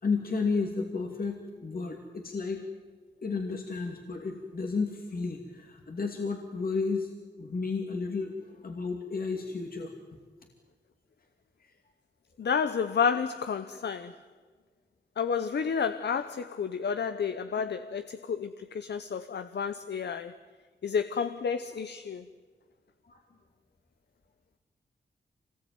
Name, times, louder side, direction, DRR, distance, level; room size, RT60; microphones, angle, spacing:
voice 1, 0.0-2.6 3.2-7.1 7.4-9.9 17.6-17.7 23.1-23.2, left 4 dB, 55° left, 2.6 m, -32 dB
voice 2, 12.4-14.2 15.2-20.3 20.8-22.2, left 6 dB, 70° left, 0.9 m, -30 dB
25.0 x 20.0 x 9.4 m
wide cardioid pair, 80°, 18 cm